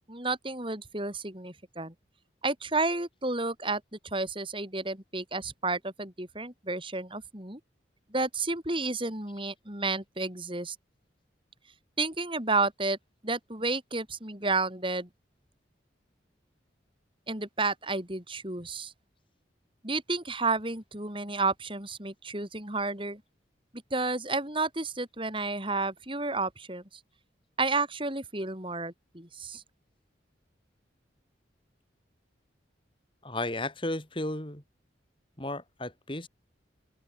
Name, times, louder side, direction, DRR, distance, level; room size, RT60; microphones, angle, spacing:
voice 1, 0.1-1.9 2.4-7.6 8.1-10.8 12.0-13.0 13.2-15.1 17.3-18.9 19.8-23.2 23.9-26.8 27.6-29.6, right 3 dB, 30° right, 7.1 m, -31 dB
voice 2, 33.2-34.6 35.4-36.3, left 1 dB, 30° left, 4.6 m, -34 dB
open air
head